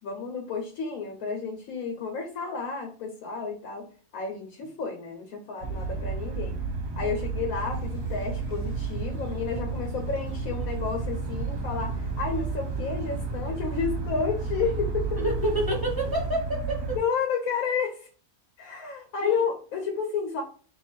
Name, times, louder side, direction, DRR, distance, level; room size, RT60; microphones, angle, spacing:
voice 1, 0.0-3.9 4.1-6.6 7.0-15.1 15.4-15.5 17.0-18.1 18.6-20.4, left 5 dB, 65° left, 3 dB, 1.2 m, -31 dB
sound 1, 5.6-17.0, right 4 dB, 50° right, 0.9 m, -32 dB
sound 2, 7.7-16.3, equal, 40° left, 1.0 m, -42 dB
voice 2, 15.2-17.0 19.2-19.4, right 1 dB, 15° right, -2 dB, 0.9 m, -28 dB
3.6 x 2.5 x 4.4 m, 0.40 s
omnidirectional pair, 1.7 m